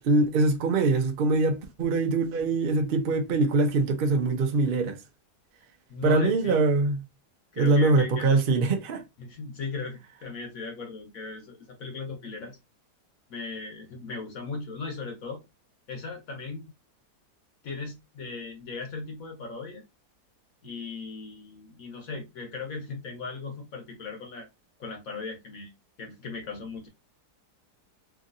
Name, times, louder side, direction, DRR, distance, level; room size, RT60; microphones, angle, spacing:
voice 1, 0.0-5.0 6.0-7.0 7.6-9.0, right 3 dB, 90° right, 0.4 m, -23 dB
voice 2, 5.9-6.7 7.5-8.4 9.2-12.6 13.3-15.4 15.9-16.7 17.6-19.8 20.6-24.5 24.8-25.7 26.0-26.9, left 4 dB, 65° left, 1.1 m, -37 dB
3.0 x 2.7 x 2.5 m
omnidirectional pair, 1.7 m